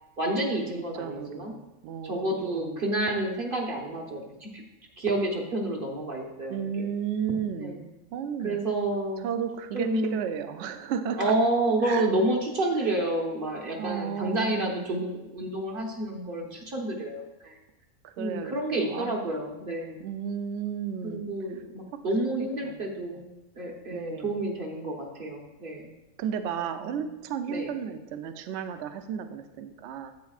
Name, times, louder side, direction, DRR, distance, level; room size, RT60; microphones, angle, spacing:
voice 1, 0.2-1.5 2.0-4.6 5.0-6.9 7.6-7.8 8.4-9.2 9.7-10.2 11.2-17.6 18.2-20.0 21.0-23.2 23.6-25.9 26.6-27.0 27.5-27.7, right 1 dB, 40° right, 0 dB, 1.2 m, -29 dB
voice 2, 1.0-2.8 6.5-8.6 9.2-11.3 11.8-12.1 12.8-12.9 13.8-14.7 18.0-19.3 20.0-21.2 21.9-22.0 22.4-22.8 23.9-24.4 26.2-30.1, right 8 dB, 65° right, 9 dB, 0.8 m, -34 dB
9.4 x 8.1 x 2.4 m, 1.0 s
omnidirectional pair, 1.5 m